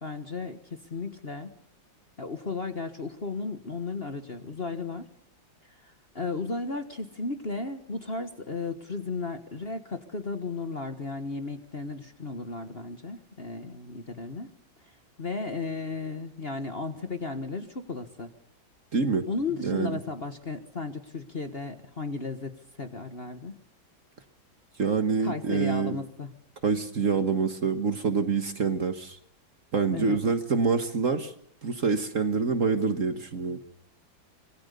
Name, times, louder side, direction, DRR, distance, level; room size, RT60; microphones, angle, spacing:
voice 1, 0.0-1.5 2.2-5.1 5.7-14.5 14.8-18.3 19.3-23.6 25.2-26.3 29.9-30.2, left 3 dB, 35° left, 8 dB, 1.5 m, -35 dB
voice 2, 18.9-19.2 19.6-20.0 24.8-25.9 26.6-29.2 29.7-31.3 31.6-33.6, right 5 dB, 45° right, 9 dB, 1.7 m, -26 dB
26.0 x 21.5 x 6.8 m, 0.69 s
omnidirectional pair, 2.1 m